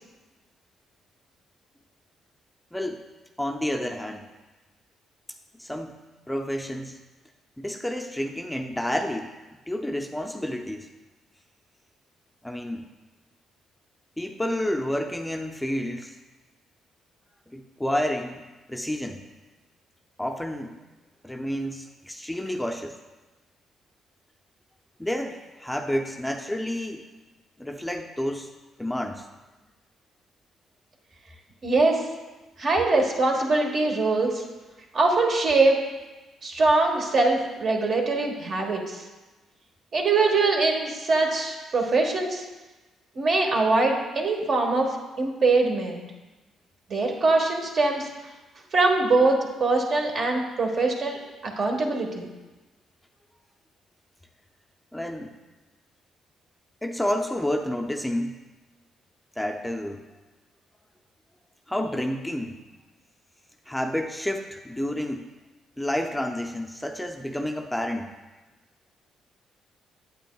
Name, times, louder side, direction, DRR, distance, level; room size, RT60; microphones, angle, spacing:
voice 1, 2.7-3.0 3.4-4.3 5.6-6.0 6.3-7.0 7.6-9.3 9.7-10.9 12.4-12.9 14.2-16.1 17.5-18.4 18.7-19.2 20.2-20.8 21.2-22.9 25.0-27.0 27.6-28.5 28.8-29.3 54.9-55.3 56.8-58.4 59.4-60.0 61.7-62.6 63.7-65.3 65.8-68.1, left 1 dB, 5° left, 3 dB, 0.5 m, -30 dB
voice 2, 31.6-32.0 32.6-34.4 34.9-35.8 36.4-39.0 39.9-42.4 43.1-44.9 45.2-46.0 46.9-48.1 48.7-52.3, right 3 dB, 55° right, 1 dB, 1.3 m, -23 dB
9.1 x 8.1 x 2.3 m, 1.2 s
cardioid pair, 90°, 0 cm